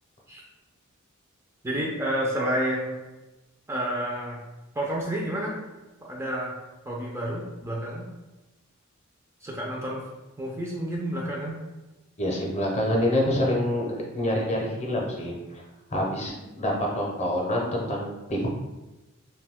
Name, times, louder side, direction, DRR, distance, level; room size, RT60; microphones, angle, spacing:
voice 1, 1.6-3.0 3.7-4.4 4.8-5.6 6.0-6.5 6.9-8.1 9.4-10.0 10.4-11.6, right 1 dB, 10° right, -3 dB, 0.4 m, -29 dB
voice 2, 12.2-13.9 14.1-15.4 15.9-18.5, left 1 dB, 30° left, -2 dB, 0.6 m, -26 dB
2.6 x 2.2 x 3.4 m, 1.1 s
head